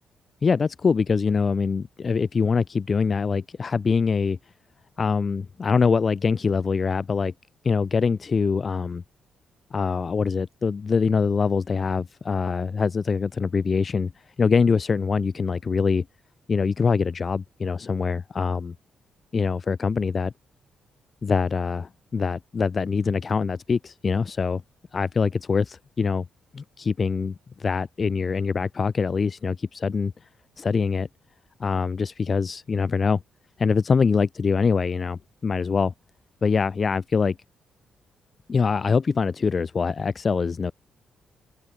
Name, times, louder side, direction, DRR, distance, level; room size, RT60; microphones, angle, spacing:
voice 1, 0.4-4.4 5.0-7.3 7.6-9.0 9.7-14.1 14.4-16.0 16.5-18.7 19.3-20.3 21.2-24.6 24.9-26.2 26.5-30.1 30.6-31.1 31.6-33.2 33.6-35.9 36.4-37.4 38.5-40.7, left 5 dB, 40° left, 3.5 m, -24 dB
cardioid pair, 80°, 0 cm